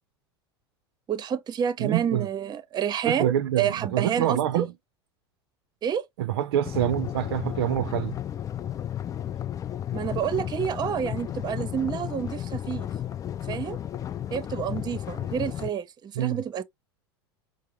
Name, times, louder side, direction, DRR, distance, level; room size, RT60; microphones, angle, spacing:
voice 1, 1.1-4.7 5.8-6.0 9.9-12.9 13.5-13.8 14.3-16.6, right 8 dB, 30° right, 0.7 m, -29 dB
voice 2, 1.8-2.3 3.0-4.7 6.2-8.2 16.2-16.4, right 11 dB, 70° right, 0.5 m, -26 dB
sound 1, 6.6-15.7, left 10 dB, 25° left, 0.3 m, -33 dB
5.5 x 2.0 x 3.0 m
hypercardioid pair, 80°, 14 cm